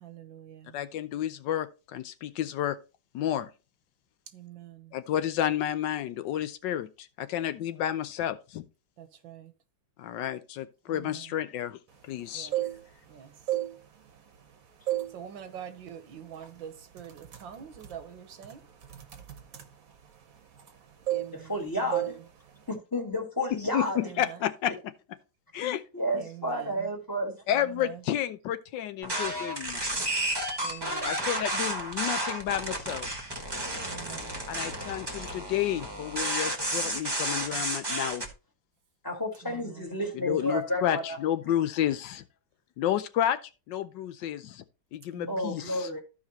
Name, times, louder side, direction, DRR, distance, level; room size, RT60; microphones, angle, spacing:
voice 1, 0.0-0.7 4.3-4.9 9.0-9.5 12.3-12.6 13.1-13.3 15.1-18.6 21.1-21.5 26.2-26.7 30.0-30.1 30.6-31.2 33.8-34.4 45.1-45.3, right 9 dB, 90° right, 1.7 m, -45 dB
voice 2, 0.7-2.8 3.1-3.5 4.9-6.9 7.2-8.6 10.0-11.8 12.0-12.5 23.5-24.7 25.5-25.8 27.5-29.8 31.0-33.1 34.5-38.2 40.1-42.2 42.8-43.4 43.7-44.6 44.9-45.9, left 11 dB, 75° left, 1.3 m, -31 dB
sound 1, 12.3-13.1 13.4-14.5 14.9-15.2 15.6-15.8 16.4-16.6 16.9-20.8 21.1-21.6 21.9-22.2 22.5-22.7, right 14 dB, 50° right, 1.3 m, -33 dB
voice 3, 21.3-22.2 22.7-24.0 25.9-27.3 39.0-41.2 45.3-46.0, equal, 10° left, 1.6 m, -31 dB
sound 2, 29.0-38.3, right 1 dB, 15° right, 1.2 m, -32 dB
14.0 x 4.9 x 2.9 m
omnidirectional pair, 2.0 m